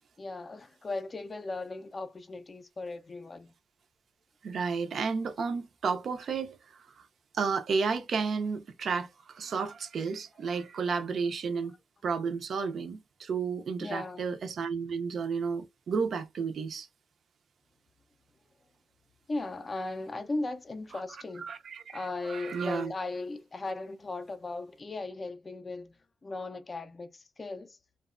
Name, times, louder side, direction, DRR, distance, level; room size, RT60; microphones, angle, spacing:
voice 1, 0.2-3.5 11.6-11.8 13.8-14.4 19.3-21.5 21.9-27.8, left 2 dB, 25° left, 0.3 m, -37 dB
voice 2, 4.4-6.6 7.0-7.1 7.3-11.7 12.0-16.9 21.4-22.0 22.3-22.9, right 5 dB, 50° right, 0.4 m, -32 dB
2.8 x 2.1 x 2.3 m
cardioid pair, 145°, 0 cm